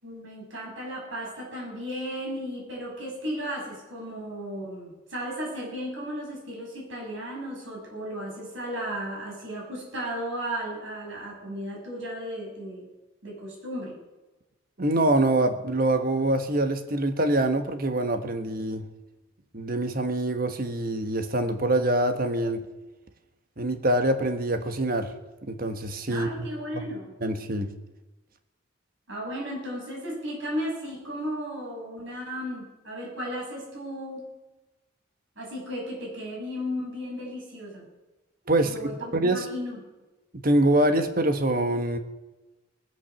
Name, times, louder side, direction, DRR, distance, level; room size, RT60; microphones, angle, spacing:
voice 1, 0.0-12.9 13.2-14.0 26.1-27.1 29.1-34.2 35.4-37.9 38.6-39.8, equal, 65° right, -2 dB, 6.5 m, -35 dB
voice 2, 14.8-18.9 19.5-22.6 23.6-25.1 25.5-26.5 26.7-26.9 27.2-27.7 38.5-39.5 40.4-42.0, right 1 dB, 45° right, 8 dB, 1.3 m, -25 dB
19.5 x 8.9 x 7.0 m, 1.1 s
head